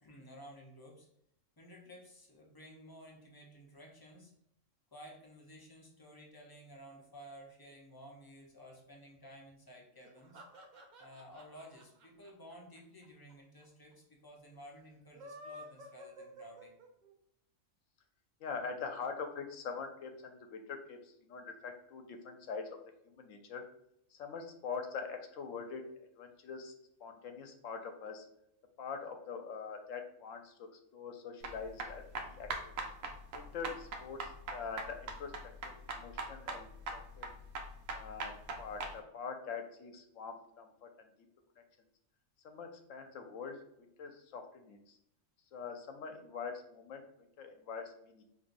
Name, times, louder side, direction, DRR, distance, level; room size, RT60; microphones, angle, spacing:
voice 1, 0.0-1.1 1.6-4.3 4.9-10.4 11.0-16.7, equal, 25° left, -1 dB, 0.5 m, -54 dB
sound 1, 10.0-13.3 13.6-13.7 13.9-14.0 15.0-17.1, equal, 45° right, 0.6 m, -52 dB
voice 2, 18.4-22.8 23.0-23.6 24.1-25.8 26.2-26.7 27.0-28.3 28.8-32.7 33.3-37.3 37.9-41.1 42.4-45.0 45.5-47.0 47.4-48.2, left 5 dB, 80° left, 5 dB, 1.0 m, -44 dB
sound 2, 31.4-38.9, right 3 dB, 80° right, 1.0 m, -41 dB
5.4 x 2.7 x 2.6 m, 0.76 s
omnidirectional pair, 1.3 m